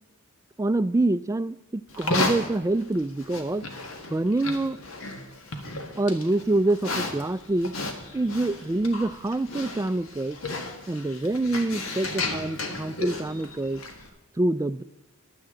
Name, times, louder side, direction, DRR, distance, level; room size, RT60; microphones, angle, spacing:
voice 1, 0.6-3.6 4.1-4.8 5.9-7.7 8.1-10.4 10.9-13.8 14.4-14.8, right 2 dB, 15° right, 15 dB, 0.3 m, -26 dB
Livestock farm animals working animals, 1.9-14.1, left 2 dB, 75° left, 1.8 m, -34 dB
15.5 x 11.5 x 3.8 m, 0.98 s
head